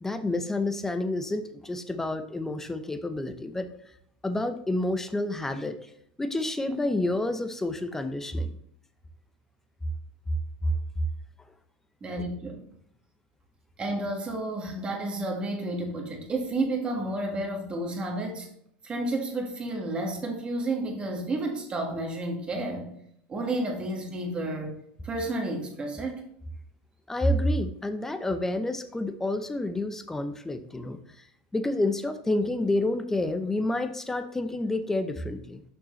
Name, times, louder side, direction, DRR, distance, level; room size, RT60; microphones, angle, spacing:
voice 1, 0.0-3.7 4.2-5.8 6.2-8.5 10.6-10.7 27.1-31.0 31.5-35.6, left 1 dB, 10° left, 0.7 m, -29 dB
voice 2, 12.0-12.6 13.8-18.5 18.8-22.9 23.3-24.7 25.0-26.3, right 2 dB, 25° right, 1.7 m, -31 dB
6.3 x 6.0 x 3.1 m
supercardioid pair, 110°, 4 cm